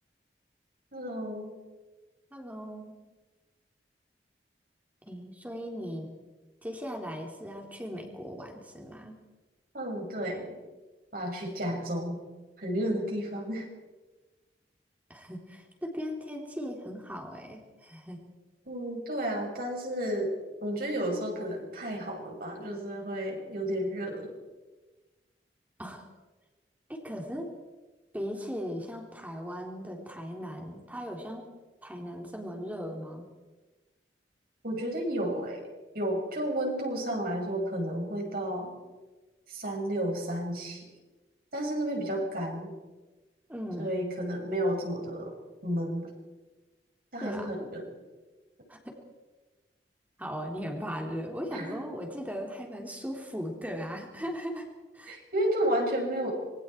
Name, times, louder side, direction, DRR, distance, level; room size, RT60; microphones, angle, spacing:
voice 1, 0.9-1.5 9.7-10.6 11.1-12.2 12.6-13.7 18.7-20.3 20.6-24.3 34.6-35.6 35.9-38.8 39.5-40.9 41.5-42.7 43.8-45.3 45.6-46.1 47.1-47.9 51.5-51.9 55.1-56.3, right 1 dB, 55° right, 0 dB, 7.0 m, -32 dB
voice 2, 2.3-2.9 5.1-6.1 6.6-9.2 15.1-18.2 25.8-26.0 26.9-27.5 28.1-31.5 31.8-33.3 43.5-43.9 47.2-47.7 48.7-49.0 50.2-54.7 54.9-55.2, equal, 10° right, 1 dB, 3.6 m, -38 dB
26.5 x 23.5 x 4.6 m, 1.2 s
head